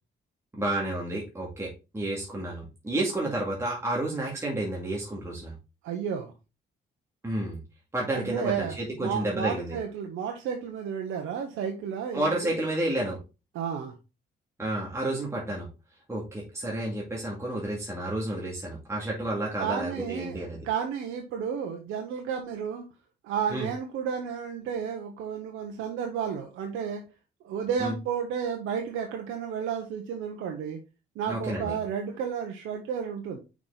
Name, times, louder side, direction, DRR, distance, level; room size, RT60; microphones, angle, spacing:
voice 1, 0.5-5.5 7.2-7.6 7.9-9.8 12.1-13.2 14.6-15.7 16.1-20.6 23.5-23.7 27.8-27.9 31.3-31.8, right 1 dB, 15° right, -3 dB, 2.2 m, -31 dB
voice 2, 5.8-6.3 8.1-12.5 13.5-13.9 19.6-22.9 23.2-27.0 27.4-30.8 31.2-33.4, right 7 dB, 90° right, 4 dB, 1.0 m, -32 dB
5.9 x 4.8 x 3.9 m, 0.29 s
cardioid pair, 90°, 20 cm